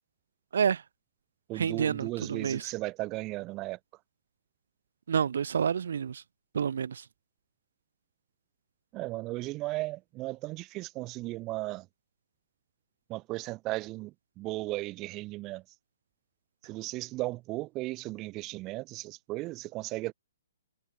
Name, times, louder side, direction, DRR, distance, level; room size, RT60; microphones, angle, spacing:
voice 1, 0.5-0.8 1.5-2.7 5.1-6.2 6.5-7.1, right 7 dB, 70° right, 4.6 m, -29 dB
voice 2, 1.5-3.8 8.9-11.9 13.1-15.6 16.6-20.1, right 20 dB, 25° right, 0.9 m, -36 dB
hypercardioid pair, 145°, 0 cm